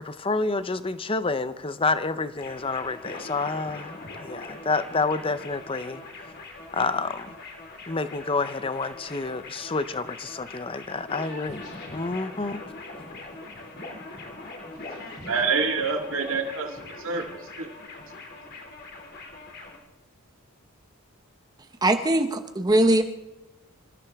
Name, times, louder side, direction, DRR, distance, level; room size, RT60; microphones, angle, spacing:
voice 1, 0.0-6.0 6.7-7.3 7.9-11.6 11.9-12.6, left 3 dB, 25° left, 12 dB, 0.7 m, -28 dB
sound 1, 2.4-19.8, left 2 dB, 45° left, 2.7 m, -42 dB
voice 2, 15.2-17.7, right 5 dB, 60° right, 2 dB, 2.1 m, -27 dB
voice 3, 21.8-23.0, right 1 dB, 15° right, 7 dB, 0.8 m, -21 dB
26.5 x 15.0 x 3.6 m, 1.0 s
head